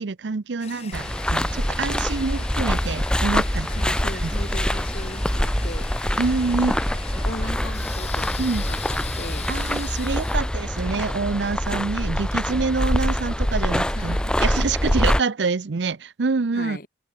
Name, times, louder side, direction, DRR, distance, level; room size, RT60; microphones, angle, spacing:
voice 1, 0.0-3.7 4.2-4.3 4.6-4.7 6.2-6.8 8.4-8.6 9.5-16.8, right 4 dB, 80° right, 0.6 m, -26 dB
Toilet flush, 0.6-13.2, left 7 dB, 35° left, 4.1 m, -41 dB
sound 1, 0.9-15.2, equal, 5° left, 0.7 m, -24 dB
voice 2, 3.7-5.9 6.5-6.8 7.1-9.5 10.3-10.4 10.8-11.2 13.9-14.4 16.5-16.9, left 1 dB, 50° left, 4.5 m, -38 dB
open air
head